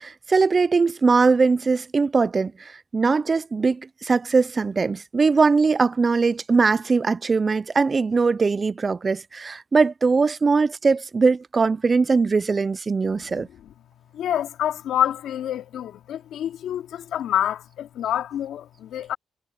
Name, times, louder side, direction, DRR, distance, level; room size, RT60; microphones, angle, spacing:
voice 1, 0.0-13.5, right 4 dB, 30° right, 0.3 m, -21 dB
voice 2, 13.1-13.7 14.1-19.2, left 10 dB, 85° left, 2.4 m, -27 dB
cardioid pair, 125°, 0 cm